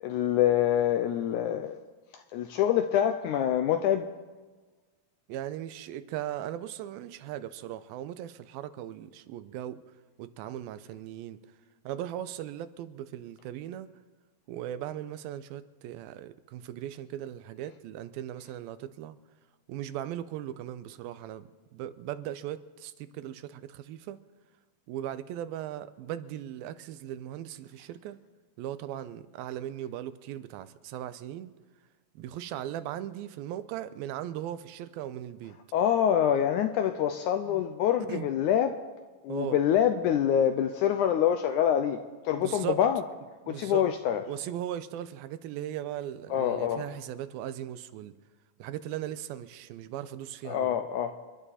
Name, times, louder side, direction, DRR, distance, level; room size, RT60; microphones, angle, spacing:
voice 1, 0.0-1.8 2.1-4.1 35.7-38.7 39.2-42.0 42.3-43.0 43.5-44.2 46.3-46.8 50.5-51.2, left 10 dB, 80° left, 1.8 m, -26 dB
voice 2, 5.3-9.8 10.2-11.4 11.8-13.9 14.5-19.2 19.7-24.2 24.9-28.2 28.6-31.5 32.2-35.6 37.5-37.6 38.1-38.3 39.3-39.6 42.4-42.8 43.4-43.9 44.3-48.1 48.6-50.8, right 11 dB, 85° right, 2.5 m, -38 dB
28.5 x 11.5 x 4.2 m
omnidirectional pair, 4.2 m